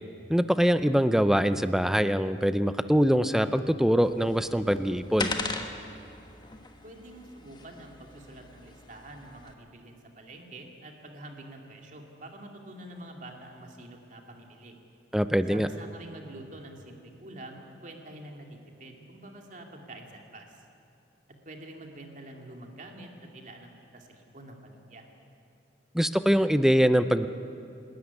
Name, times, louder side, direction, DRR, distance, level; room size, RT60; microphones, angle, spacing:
voice 1, 0.3-5.3 15.1-15.7 25.9-27.3, equal, ahead, 11 dB, 0.5 m, -23 dB
sound 1, 4.0-9.5, left 3 dB, 25° left, 1.3 m, -39 dB
voice 2, 6.8-14.7 15.5-20.6 21.4-25.1, right 1 dB, 45° right, 2 dB, 2.5 m, -46 dB
27.0 x 13.0 x 9.7 m, 2.6 s
head